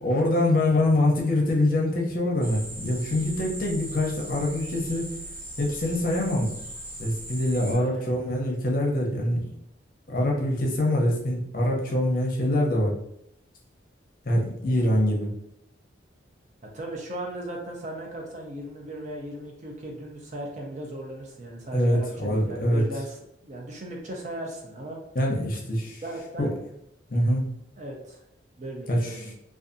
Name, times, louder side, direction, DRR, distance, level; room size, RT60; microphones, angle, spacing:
voice 1, 0.0-5.1 5.6-6.5 7.0-9.5 10.1-12.9 14.3-15.3 21.7-22.8 25.1-26.0 26.4-26.5 27.1-27.4 28.9-29.2, left 1 dB, 50° left, -1 dB, 0.6 m, -24 dB
sound 1, 2.4-7.7, right 1 dB, 15° right, 0.9 m, -39 dB
voice 2, 7.7-8.1 16.7-25.0 26.0-26.5 27.8-28.2 28.6-29.3, right 1 dB, 40° right, 0 dB, 0.5 m, -37 dB
2.6 x 2.3 x 2.5 m, 0.77 s
head